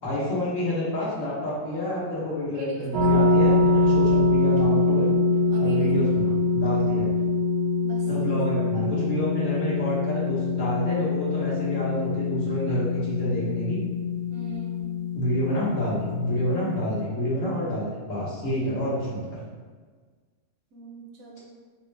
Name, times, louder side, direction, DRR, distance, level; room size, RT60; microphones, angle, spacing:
voice 1, 0.0-5.1 5.6-7.1 8.1-13.8 15.1-19.4, equal, 70° left, -7 dB, 1.4 m, -28 dB
voice 2, 2.5-3.1 5.5-6.0 7.8-8.8 14.3-14.9 20.7-21.4, right 2 dB, 85° right, -1 dB, 1.2 m, -41 dB
sound 1, 2.9-17.0, left 3 dB, 65° right, 0.6 m, -24 dB
4.2 x 2.0 x 3.2 m, 1.5 s
omnidirectional pair, 1.4 m